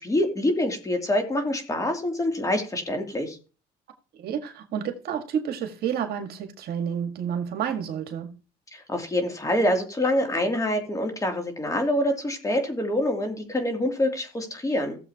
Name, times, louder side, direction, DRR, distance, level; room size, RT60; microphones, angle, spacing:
voice 1, 0.0-3.4 8.7-15.0, left 1 dB, 20° left, 2.8 m, -26 dB
voice 2, 4.2-8.3, right 8 dB, 65° right, 1.8 m, -30 dB
17.0 x 7.3 x 2.9 m
cardioid pair, 110°, 17 cm